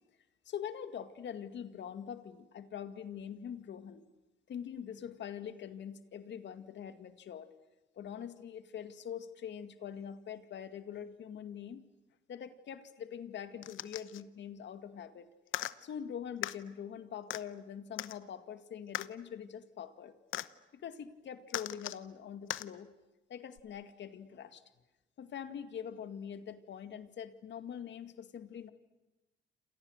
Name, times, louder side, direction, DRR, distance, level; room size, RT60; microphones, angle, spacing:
voice 1, 0.5-4.1 4.5-7.5 8.0-11.8 12.3-15.3 15.8-20.2 20.7-22.9 23.3-24.6 25.2-28.7, left 8 dB, 65° left, 10 dB, 2.1 m, -44 dB
sound 1, 13.6-14.2 15.5-15.7 16.4-16.6 17.3-17.4 18.0-18.2 18.9-19.1 20.3-20.5 21.5-22.0 22.5-22.7 23.6-23.7, left 14 dB, 80° left, 1.0 m, -38 dB
28.5 x 27.5 x 6.6 m, 1.1 s
cardioid pair, 90°, 20 cm